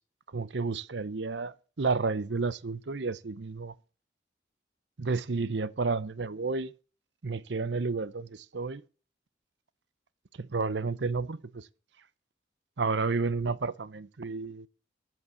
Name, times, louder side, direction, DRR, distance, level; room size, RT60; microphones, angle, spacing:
voice 1, 0.3-3.7 5.0-6.7 7.2-8.8 10.4-11.7 12.8-14.7, right 4 dB, 70° right, 0.7 m, -31 dB
13.5 x 7.7 x 7.0 m
head